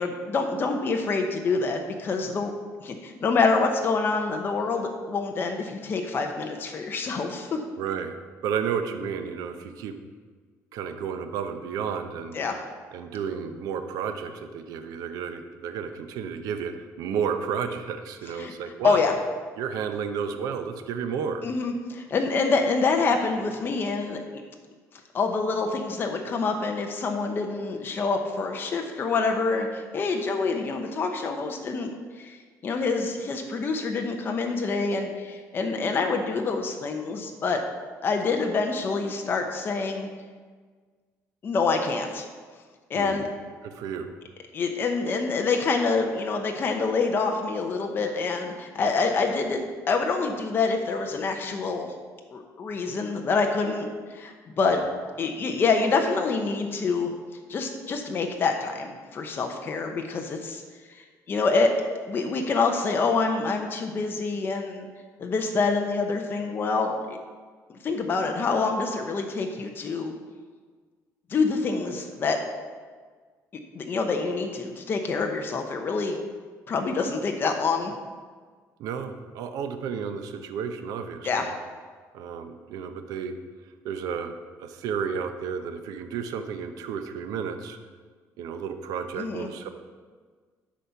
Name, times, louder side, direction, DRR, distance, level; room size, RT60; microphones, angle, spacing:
voice 1, 0.0-2.5 2.8-7.6 12.3-12.6 18.4-18.5 18.8-19.2 21.4-24.2 25.1-32.4 32.6-37.6 38.0-40.1 41.4-42.2 42.9-43.3 44.5-49.6 49.9-51.9 52.3-54.8 55.2-57.1 57.5-60.6 60.9-61.0 61.3-61.7 62.1-64.9 65.2-67.2 67.7-70.1 71.3-72.4 73.7-76.2 76.7-77.9 81.2-81.5 89.2-89.5, left 4 dB, 35° left, 3 dB, 0.9 m, -26 dB
voice 2, 7.8-8.2 8.4-10.0 10.7-12.4 12.9-19.0 19.6-21.4 42.9-43.3 43.6-44.1 54.7-54.9 78.8-81.5 82.1-83.3 83.8-87.8 88.4-89.7, right 7 dB, 80° right, 7 dB, 0.8 m, -32 dB
11.5 x 4.2 x 5.8 m, 1.5 s
cardioid pair, 140°, 6 cm